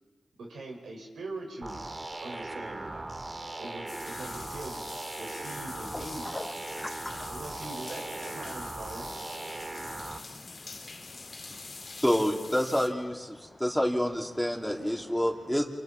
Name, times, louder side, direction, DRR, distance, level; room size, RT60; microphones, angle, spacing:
voice 1, 0.4-1.8 2.2-3.1 3.6-4.9 5.2-6.4 7.2-9.1, right 2 dB, 90° right, 0 dB, 6.0 m, -42 dB
sound 1, 1.6-10.2, right 2 dB, 40° right, 2.2 m, -39 dB
sound 2, 3.9-12.9, left 3 dB, 60° left, 2.6 m, -45 dB
voice 2, 5.9-7.3 9.5-11.9 13.5-13.6, left 2 dB, 25° left, 14 dB, 0.7 m, -44 dB
voice 3, 12.0-15.6, equal, ahead, 0 dB, 3.6 m, -28 dB
29.5 x 28.5 x 4.6 m, 1.4 s
cardioid pair, 55°, 0 cm